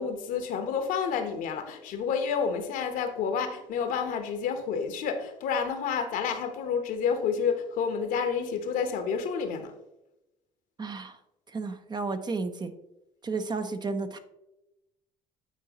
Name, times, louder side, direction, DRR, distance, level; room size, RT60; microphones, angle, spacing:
voice 1, 0.0-9.7, left 6 dB, 65° left, 1.0 m, -29 dB
voice 2, 10.8-11.2 11.5-12.7 13.2-14.2, right 4 dB, 30° right, 0.7 m, -32 dB
9.2 x 4.6 x 2.9 m
hypercardioid pair, 60°, 15 cm